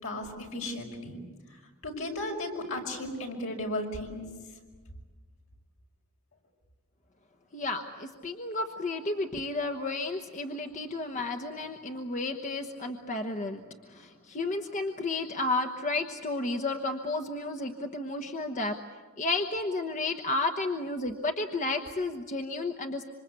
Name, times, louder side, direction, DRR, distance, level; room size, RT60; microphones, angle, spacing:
voice 1, 0.0-1.2 1.8-4.3, left 1 dB, 70° left, 1 dB, 5.6 m, -35 dB
voice 2, 7.5-13.6 13.9-18.8 19.2-23.0, left 2 dB, 35° left, 5 dB, 1.2 m, -32 dB
27.0 x 25.5 x 8.3 m, 1.3 s
head